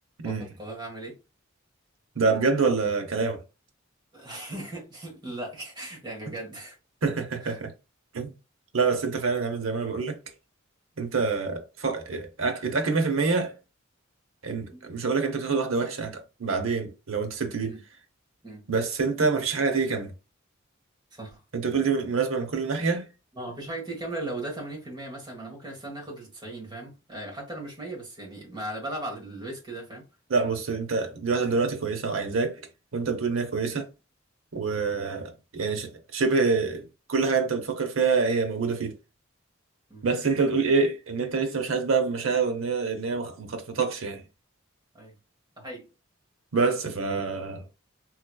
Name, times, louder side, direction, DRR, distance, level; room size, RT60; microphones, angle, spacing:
voice 1, 0.2-1.2 4.1-6.8 7.4-7.5 14.7-14.9 17.6-17.8 18.4-18.7 21.1-21.4 23.3-30.1 39.9-40.1 44.9-45.1 45.6-45.9, right 1 dB, 25° right, 1.5 m, -37 dB
voice 2, 2.2-3.4 7.0-7.7 8.1-8.3 8.7-10.2 11.0-13.5 14.4-17.7 18.7-20.1 21.5-23.1 30.3-32.6 32.9-33.9 34.5-39.0 40.0-44.2 46.5-47.6, right 4 dB, 80° right, 0.8 m, -26 dB
3.8 x 3.0 x 2.2 m
head